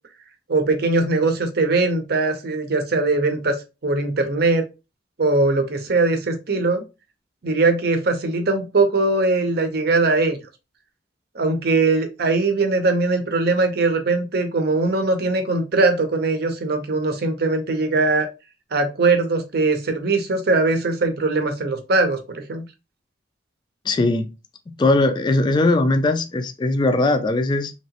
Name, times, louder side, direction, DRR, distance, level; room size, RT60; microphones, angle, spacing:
voice 1, 0.5-3.6 3.8-4.6 5.2-6.8 7.4-10.4 11.3-18.3 18.7-22.7, right 3 dB, 60° right, 0.7 m, -20 dB
voice 2, 23.9-24.3 24.7-27.7, left 2 dB, 25° left, 0.3 m, -19 dB
3.0 x 2.8 x 2.8 m
head